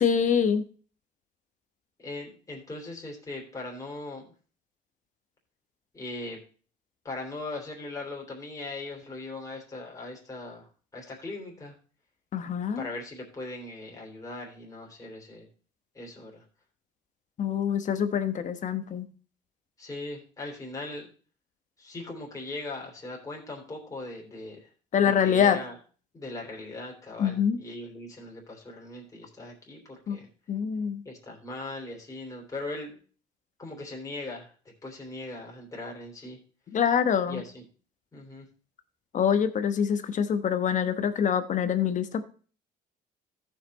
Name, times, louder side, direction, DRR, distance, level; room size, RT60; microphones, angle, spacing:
voice 1, 0.0-0.6 12.3-12.8 17.4-19.1 24.9-25.6 27.2-27.6 30.1-30.2 30.5-31.0 36.7-37.4 39.1-42.2, left 8 dB, 45° left, 10 dB, 1.2 m, -25 dB
voice 2, 2.0-4.3 5.9-6.4 7.0-10.7 10.9-11.7 12.7-15.5 15.9-16.4 19.8-21.1 21.8-24.7 25.0-25.8 26.1-30.3 31.0-33.0 33.6-34.5 34.8-36.4 37.3-37.6 38.1-38.5, left 2 dB, 20° left, -2 dB, 3.2 m, -39 dB
14.0 x 5.9 x 4.2 m, 0.40 s
cardioid pair, 110°, 17 cm